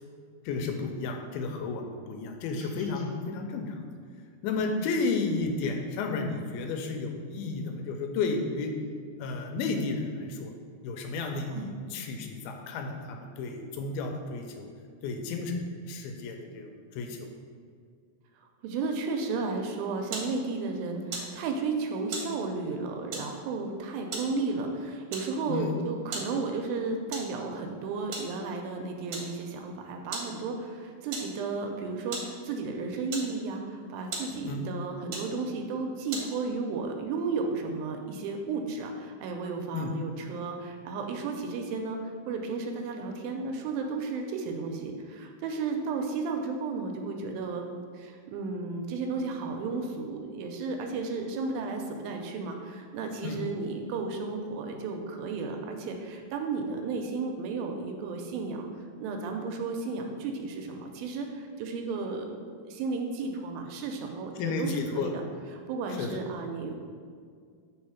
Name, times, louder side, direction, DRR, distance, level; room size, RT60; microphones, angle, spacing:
voice 1, 0.5-3.8 4.4-8.7 9.2-10.5 10.8-14.7 15.0-17.3 25.5-25.7 34.4-34.6 39.7-39.9 53.2-53.4 64.4-65.1 66.0-66.1, left 4 dB, 85° left, 3 dB, 2.5 m, -32 dB
sound 1, 2.5-3.1, equal, 60° left, 1.4 m, -51 dB
voice 2, 18.6-47.6 47.9-58.7 59.0-65.2 65.5-66.7, right 4 dB, 80° right, 3 dB, 2.3 m, -33 dB
sound 2, 20.0-36.6, right 3 dB, 65° right, 1.7 m, -43 dB
4.7 x 4.3 x 5.7 m, 2.1 s
omnidirectional pair, 4.3 m